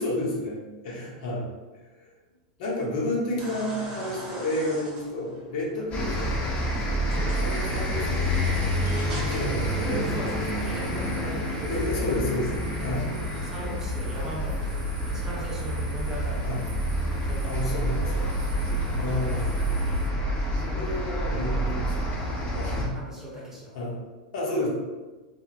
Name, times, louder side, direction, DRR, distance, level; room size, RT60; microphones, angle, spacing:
voice 1, 0.0-1.5 1.9-2.1 2.6-6.6 7.4-8.6 9.2-10.4 11.7-13.1 16.4-16.6 17.4-18.3 19.0-19.5 20.6-22.1 22.5-23.0 23.4-23.5 23.7-24.0 24.3-24.7, left 1 dB, 65° left, -4 dB, 1.1 m, -31 dB
sound 1, 3.4-10.8, right 2 dB, 35° right, 0.9 m, -44 dB
sound 2, 5.9-22.9, equal, 30° left, 0.9 m, -28 dB
sound 3, 7.3-20.1, left 1 dB, 85° right, 0.4 m, -36 dB
voice 2, 9.7-12.0 13.1-16.5 17.2-17.8 19.1-19.4 19.6-19.8 22.5-23.8, equal, 10° right, -6 dB, 0.9 m, -39 dB
2.8 x 2.7 x 2.6 m, 1.2 s
hypercardioid pair, 115°, 4 cm